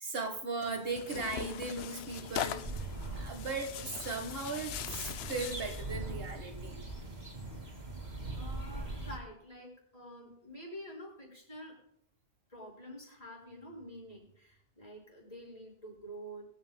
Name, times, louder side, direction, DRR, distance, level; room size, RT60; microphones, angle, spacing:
voice 1, 0.0-2.9 3.2-6.8, right 3 dB, 65° right, 5 dB, 1.7 m, -38 dB
Tearing, 0.6-5.9, left 11 dB, 80° left, 0.8 m, -41 dB
sound 1, 2.0-9.2, right 2 dB, 40° right, 2.2 m, -42 dB
voice 2, 8.3-11.8 12.5-16.5, equal, 35° left, -2 dB, 5.8 m, -48 dB
23.0 x 9.2 x 2.2 m, 0.75 s
omnidirectional pair, 1.1 m